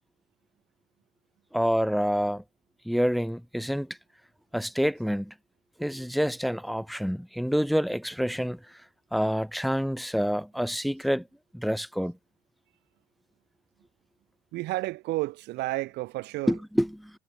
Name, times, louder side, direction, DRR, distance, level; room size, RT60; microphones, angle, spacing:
voice 1, 1.5-2.4 2.9-3.9 4.5-5.3 5.8-8.6 9.1-11.2 11.5-12.1 16.5-17.1, equal, ahead, 2.6 m, -27 dB
voice 2, 14.5-16.5, right 19 dB, 85° right, 4.5 m, -31 dB
cardioid pair, 110°, 17 cm